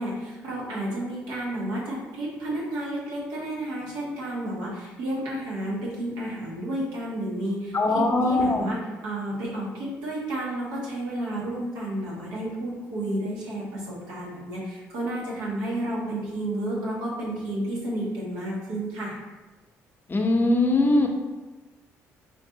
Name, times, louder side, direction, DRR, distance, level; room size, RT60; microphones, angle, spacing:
voice 1, 0.0-19.2, right 1 dB, 85° right, -5 dB, 1.5 m, -31 dB
voice 2, 7.7-8.7 20.1-21.1, left 2 dB, 35° left, 2 dB, 0.7 m, -21 dB
4.5 x 2.6 x 3.8 m, 1.2 s
supercardioid pair, 65°, 6 cm